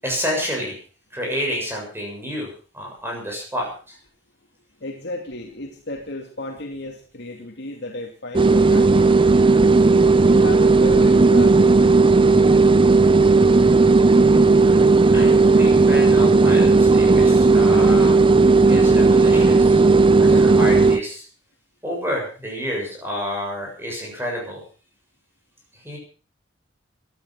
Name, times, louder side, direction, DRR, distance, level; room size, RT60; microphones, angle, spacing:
voice 1, 0.0-0.8 1.1-2.5 2.7-4.0 15.1-18.2 18.7-19.8 20.2-21.3 21.8-24.6 25.8-26.0, equal, 15° right, -1 dB, 7.2 m, -29 dB
voice 2, 4.8-9.3 10.0-12.2, left 2 dB, 65° left, 2 dB, 2.5 m, -34 dB
sound 1, 8.3-21.0, right 3 dB, 30° right, 0.8 m, -14 dB
18.0 x 12.5 x 5.9 m, 0.40 s
head